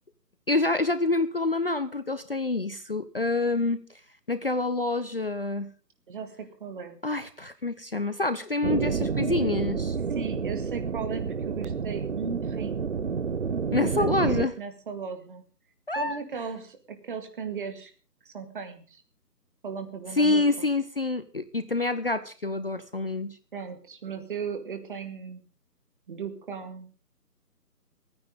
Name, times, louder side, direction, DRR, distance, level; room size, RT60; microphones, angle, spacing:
voice 1, 0.5-3.8 4.3-5.7 7.0-10.0 13.7-14.5 15.9-16.2 20.1-23.4, left 2 dB, 35° left, 12 dB, 0.6 m, -27 dB
voice 2, 6.1-7.0 10.1-12.9 13.7-15.4 16.0-17.9 18.2-19.0 19.6-20.7 23.5-25.4 26.1-26.9, right 6 dB, 30° right, 8 dB, 2.0 m, -37 dB
sound 1, 8.6-14.5, right 5 dB, 45° right, 0.6 m, -29 dB
28.5 x 9.7 x 3.7 m, 0.37 s
figure-of-eight pair, 160°, 48 cm